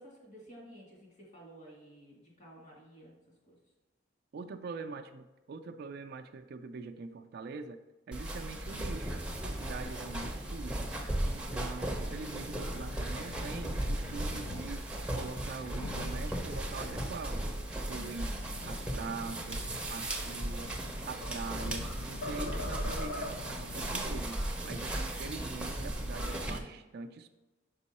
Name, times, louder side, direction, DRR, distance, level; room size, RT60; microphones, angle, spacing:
voice 1, 0.0-3.2 3.5-3.6 17.9-18.8 24.6-25.0, equal, 40° left, -3 dB, 2.0 m, -53 dB
voice 2, 4.3-7.8 8.1-10.9 11.2-14.8 15.1-17.5 17.8-18.4 18.6-19.6 19.9-20.8 21.0-27.3, right 4 dB, 55° right, 6 dB, 0.3 m, -43 dB
sound 1, 8.1-26.6, right 1 dB, 5° right, 0.6 m, -36 dB
sound 2, 11.8-24.5, left 3 dB, 60° left, 0.4 m, -47 dB
sound 3, 20.6-21.9 22.2-23.6, left 1 dB, 90° left, 0.9 m, -41 dB
5.4 x 5.3 x 4.1 m, 1.1 s
head